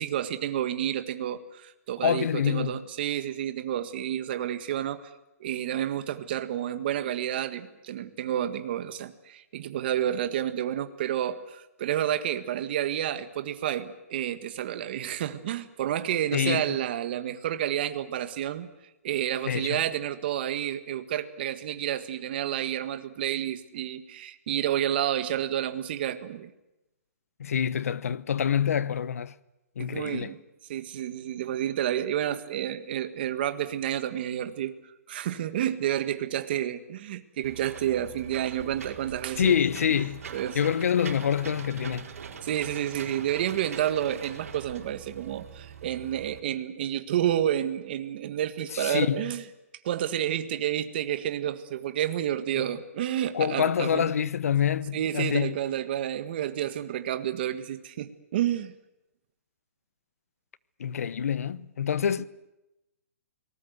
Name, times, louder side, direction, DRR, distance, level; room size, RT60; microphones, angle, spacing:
voice 1, 0.0-5.1 5.4-18.7 19.0-26.5 29.8-30.4 30.7-34.7 35.1-39.6 39.9-40.0 40.3-40.6 42.4-49.4 49.8-54.1 54.9-58.7, right 11 dB, 40° right, 1.7 m, -30 dB
voice 2, 2.0-2.7 16.3-16.8 19.5-19.8 27.4-29.3 29.8-30.3 39.4-40.2 40.5-42.1 48.7-49.3 52.6-52.7 53.3-55.6 60.8-62.3, left 8 dB, 65° left, 1.0 m, -26 dB
Engine / Mechanisms, 37.4-46.4, right 6 dB, 65° right, 4.8 m, -43 dB
29.5 x 19.5 x 8.1 m
hypercardioid pair, 165°, 8 cm